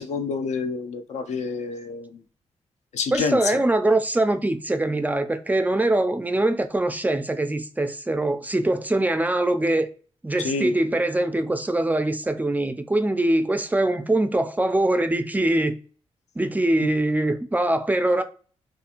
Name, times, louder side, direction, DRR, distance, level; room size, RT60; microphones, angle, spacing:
voice 1, 0.0-2.2 2.9-3.6 10.4-10.7 16.8-16.9, left 5 dB, 75° left, 0.4 m, -28 dB
voice 2, 3.1-9.9 10.2-15.8 16.4-18.2, right 1 dB, 15° right, 0.3 m, -23 dB
2.9 x 2.4 x 2.4 m
cardioid pair, 75°, 12 cm